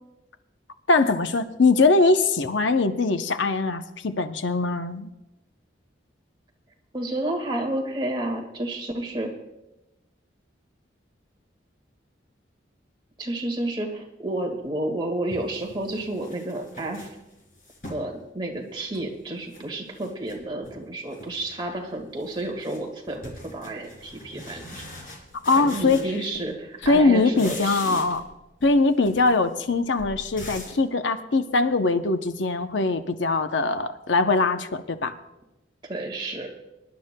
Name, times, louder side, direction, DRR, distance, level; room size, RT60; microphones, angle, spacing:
voice 1, 0.9-5.1 25.5-26.1 26.8-28.2 28.6-35.1, left 3 dB, 80° left, 8 dB, 0.7 m, -22 dB
voice 2, 6.9-9.3 13.2-17.1 17.9-24.8 25.5-28.0 35.8-36.5, right 1 dB, 25° right, 1 dB, 1.8 m, -31 dB
sound 1, 14.6-14.7 15.3-18.1 18.5-19.6 19.9-20.8 21.1-21.5 21.8-26.6 26.8-28.3 28.6-30.8, left 1 dB, 45° left, 3.0 m, -43 dB
25.0 x 11.5 x 2.2 m, 0.95 s
head